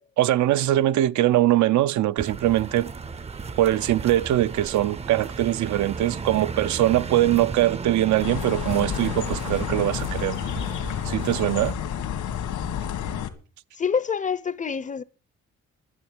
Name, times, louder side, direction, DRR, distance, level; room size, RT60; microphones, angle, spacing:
voice 1, 0.0-2.9 3.6-10.4 11.0-11.7, right 14 dB, 70° right, 0.6 m, -22 dB
sound 1, 2.2-11.7, right 5 dB, 20° right, 0.5 m, -35 dB
sound 2, 8.2-13.3, left 9 dB, 80° left, 2.0 m, -30 dB
voice 2, 13.8-15.0, left 6 dB, 25° left, 0.6 m, -26 dB
11.5 x 7.9 x 8.8 m
cardioid pair, 160°, 30 cm